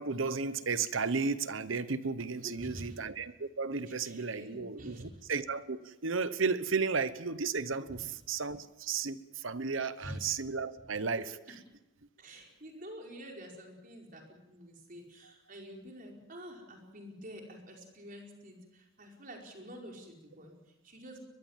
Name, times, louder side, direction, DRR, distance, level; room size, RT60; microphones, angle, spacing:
voice 1, 0.0-11.2, right 4 dB, 70° right, 14 dB, 1.0 m, -34 dB
voice 2, 2.4-2.9 4.0-5.2 7.8-8.1 10.0-10.2 12.2-21.2, equal, 40° right, 1 dB, 4.9 m, -48 dB
23.0 x 21.0 x 7.5 m, 1.0 s
head